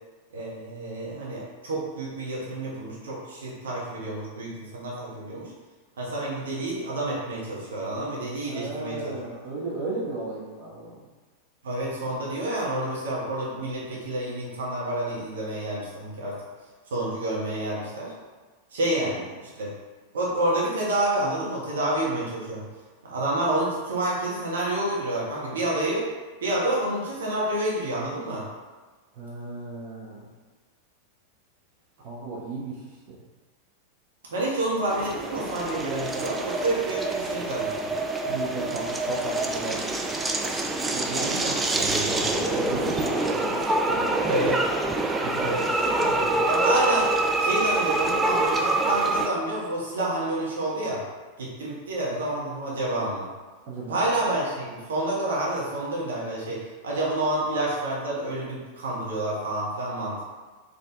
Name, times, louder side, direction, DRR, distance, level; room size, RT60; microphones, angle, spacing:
voice 1, 0.3-5.5 6.0-9.1 11.6-16.4 16.9-18.1 18.7-19.3 19.5-19.7 20.1-22.7 23.0-26.1 26.4-28.5 34.3-37.9 41.1-42.7 44.3-44.6 45.4-47.1 47.4-51.0 51.4-53.3 53.9-60.2, right 1 dB, 65° right, -5 dB, 1.2 m, -29 dB
voice 2, 8.5-11.0 19.0-19.2 29.2-30.3 32.0-32.8 38.2-40.2 40.9-41.4 42.5-44.3 45.2-46.4 53.7-54.0, right 2 dB, 45° right, -6 dB, 1.1 m, -35 dB
sound 1, 34.9-49.3, right 2 dB, 10° right, 0.4 m, -26 dB
4.4 x 3.4 x 3.5 m, 1.3 s
figure-of-eight pair, 90°, 0 cm